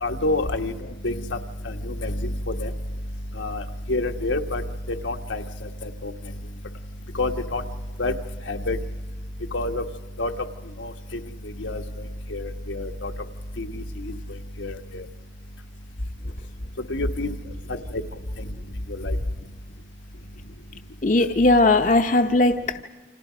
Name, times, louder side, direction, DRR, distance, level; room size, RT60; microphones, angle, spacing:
voice 1, 0.0-0.7 1.0-1.4 1.6-2.7 3.4-3.6 3.9-4.6 5.0-5.4 5.8-6.1 7.2-7.6 8.0-8.1 8.5-8.8 9.5-9.8 10.2-10.3 10.8-10.9 11.6-11.8 12.3-13.1 13.6-14.1 14.6-15.0 16.9-17.3 17.9-18.0 19.0-19.2, left 2 dB, 85° left, 4 dB, 1.4 m, -27 dB
voice 2, 21.0-22.8, left 2 dB, 45° left, 6 dB, 0.8 m, -18 dB
29.5 x 26.5 x 5.1 m, 1.2 s
head